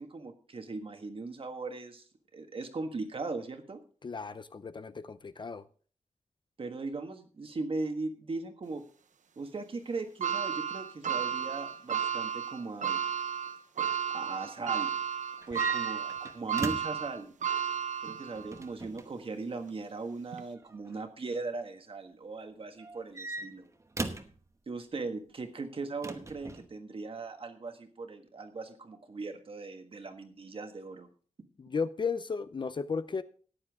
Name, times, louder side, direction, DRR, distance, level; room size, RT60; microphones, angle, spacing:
voice 1, 0.0-2.0 2.3-3.8 6.6-8.8 9.4-13.0 14.1-14.9 15.5-17.3 18.0-23.7 24.7-31.1, right 3 dB, 45° right, 6 dB, 1.5 m, -39 dB
voice 2, 4.0-5.6 31.6-33.2, left 5 dB, 40° left, 13 dB, 0.5 m, -34 dB
sound 1, 10.2-18.6 19.1-19.2 20.3-20.4, right 8 dB, 80° right, 0.8 m, -33 dB
sound 2, 15.4-17.1 18.3-19.1 20.6-21.0 22.8-24.4 26.0-26.7, right 2 dB, 25° right, 1.0 m, -38 dB
14.0 x 9.9 x 3.6 m, 0.42 s
wide cardioid pair, 175°, 13 cm